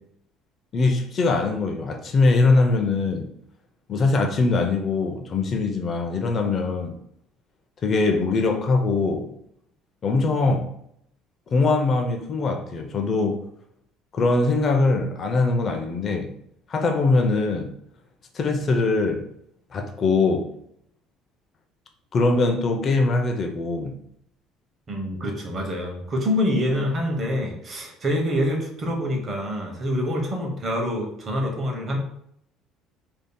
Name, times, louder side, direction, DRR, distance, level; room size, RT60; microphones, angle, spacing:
voice 1, 0.7-3.3 3.9-7.0 7.8-9.3 10.0-10.7 11.5-13.4 14.1-16.3 16.7-17.7 18.3-19.2 19.7-20.5 22.1-23.9, left 3 dB, 40° left, 4 dB, 0.5 m, -22 dB
voice 2, 24.9-32.0, equal, 35° right, 2 dB, 1.0 m, -26 dB
5.0 x 2.7 x 2.2 m, 0.72 s
cardioid pair, 110°, 0 cm